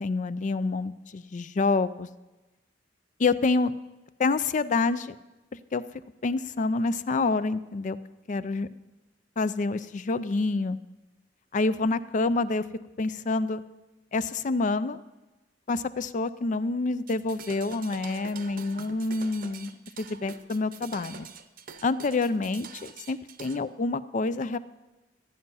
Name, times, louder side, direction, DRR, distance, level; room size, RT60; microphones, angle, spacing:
voice 1, 0.0-2.1 3.2-3.7 4.2-5.2 5.7-5.8 6.2-8.0 8.3-8.7 9.4-10.8 11.5-12.6 13.0-13.6 14.1-15.0 15.7-21.3 21.8-24.6, left 3 dB, 45° left, 15 dB, 0.4 m, -27 dB
sound 1, 17.0-23.6, right 6 dB, 50° right, 0.8 m, -45 dB
13.5 x 9.7 x 5.5 m, 1.1 s
head